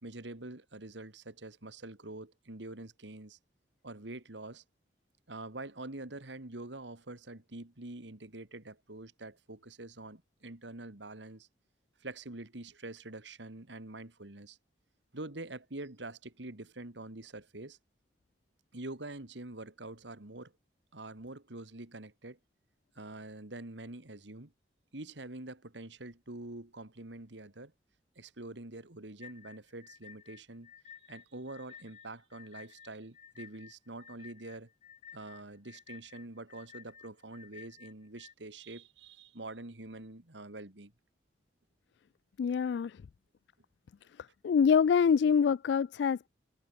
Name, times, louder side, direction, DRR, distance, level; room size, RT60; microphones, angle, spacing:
voice 1, 0.0-3.4 3.8-4.6 5.3-11.5 12.0-14.6 15.1-17.8 18.7-20.5 20.9-22.4 23.0-24.5 24.9-27.7 28.2-30.7 31.1-34.7 35.1-40.9, right 2 dB, 80° right, 2.3 m, -45 dB
sound 1, 29.2-38.3, left 8 dB, 40° left, 6.0 m, -54 dB
voice 2, 42.4-43.0 44.4-46.3, left 6 dB, 70° left, 0.3 m, -25 dB
head